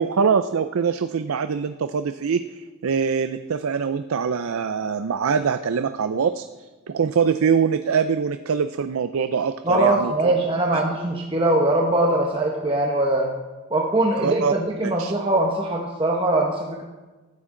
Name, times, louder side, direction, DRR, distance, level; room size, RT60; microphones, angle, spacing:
voice 1, 0.0-10.3 10.7-10.8 14.2-14.5 15.0-15.1, right 6 dB, 75° right, 11 dB, 0.4 m, -23 dB
voice 2, 9.6-13.3 13.7-16.8, right 1 dB, 25° right, 0 dB, 1.0 m, -22 dB
15.5 x 12.0 x 3.8 m, 1.2 s
head